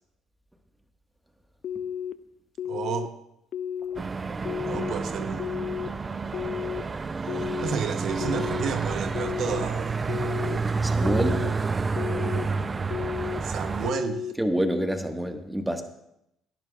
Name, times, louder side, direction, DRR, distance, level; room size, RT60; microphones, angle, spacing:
sound 1, 1.6-2.1 2.6-3.1 3.5-4.0 4.4-4.9 5.4-5.9 6.3-6.8 7.3-7.7 8.2-8.7 9.1-9.6 10.1-10.6 11.0-11.5 12.0-12.4 12.9-13.4 13.8-14.3, left 8 dB, 60° left, 0.5 m, -32 dB
voice 1, 2.6-3.1 4.6-5.6 7.6-10.0 13.4-14.3, right 7 dB, 65° right, 8 dB, 0.9 m, -31 dB
sound 2, 3.9-13.9, right 4 dB, 30° right, 0.5 m, -29 dB
voice 2, 10.8-11.4 14.4-15.8, equal, 10° right, 5 dB, 1.5 m, -27 dB
18.0 x 10.5 x 2.4 m, 0.81 s
supercardioid pair, 80°, 0 cm